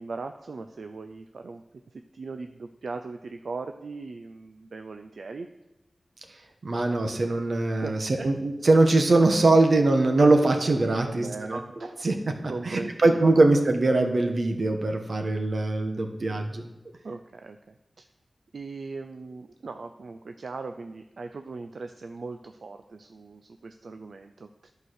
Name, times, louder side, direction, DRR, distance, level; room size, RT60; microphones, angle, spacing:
voice 1, 0.0-1.6 1.9-5.5 7.7-8.3 10.8-11.9 12.4-13.2 17.0-18.1 18.5-24.7, right 3 dB, 85° right, 7 dB, 0.4 m, -39 dB
voice 2, 6.3-11.6 12.0-16.6, right 2 dB, 65° right, 4 dB, 1.2 m, -22 dB
11.0 x 4.7 x 6.4 m, 0.99 s
wide cardioid pair, 70°, 0 cm